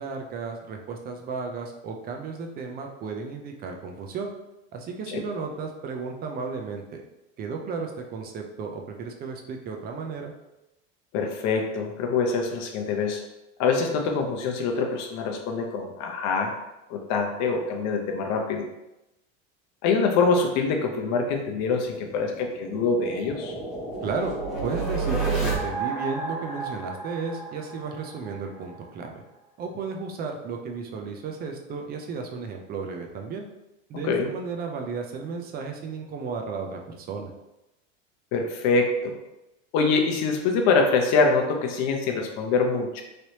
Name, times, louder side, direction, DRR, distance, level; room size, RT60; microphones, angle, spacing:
voice 1, 0.0-4.3 4.7-7.0 7.4-10.3 24.0-24.3 24.6-29.2 29.6-33.5 33.9-37.3, right 4 dB, 25° right, 3 dB, 0.4 m, -34 dB
voice 2, 11.1-13.2 13.6-16.5 16.9-18.7 19.8-23.5 34.1-34.3 38.3-39.2 39.7-43.0, left 4 dB, 45° left, 3 dB, 0.7 m, -24 dB
sound 1, 21.5-28.4, right 4 dB, ahead, 0.8 m, -31 dB
3.2 x 2.9 x 2.8 m, 0.94 s
supercardioid pair, 125°, 38 cm